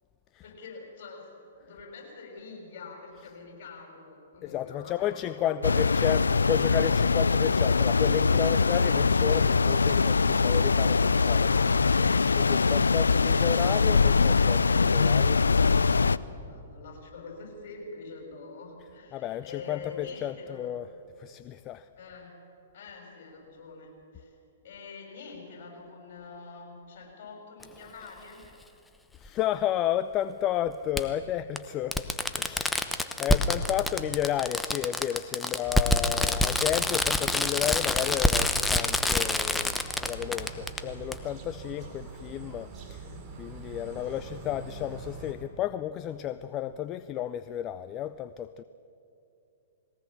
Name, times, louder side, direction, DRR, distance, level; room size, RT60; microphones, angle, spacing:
voice 1, 0.4-6.1 15.5-20.8 22.0-22.4 22.7-24.4 24.6-28.4 33.0-33.8 35.4-35.9 43.9-44.2, left 4 dB, 55° left, 1 dB, 6.7 m, -46 dB
voice 2, 4.4-12.1 12.4-15.5 19.1-20.9 21.2-21.9 29.2-32.1 32.3-43.1 43.4-48.6, left 11 dB, 30° left, 13 dB, 0.5 m, -32 dB
sound 1, 5.6-16.2, left 4 dB, 90° left, 0.4 m, -23 dB
Fireworks, 27.6-27.7 29.3-29.4 31.0-31.1 31.6-31.7 31.9-40.8 41.1-41.2, left 1 dB, 5° left, 0.9 m, -26 dB
sound 2, 35.6-45.3, right 4 dB, 30° right, 3.2 m, -44 dB
21.0 x 17.5 x 7.5 m, 2.7 s
hypercardioid pair, 120°, 0 cm